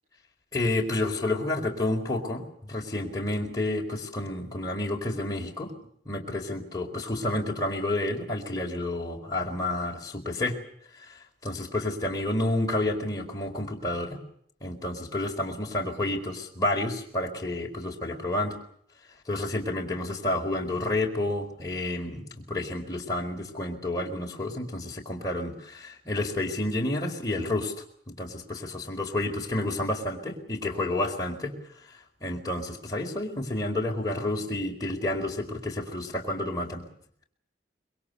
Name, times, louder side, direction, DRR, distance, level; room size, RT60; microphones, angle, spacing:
voice 1, 0.5-5.7 6.0-10.6 11.4-14.2 14.6-18.6 19.3-27.7 28.1-31.6 32.2-36.9, left 1 dB, 20° left, -1 dB, 4.6 m, -30 dB
26.5 x 23.5 x 6.9 m, 0.65 s
head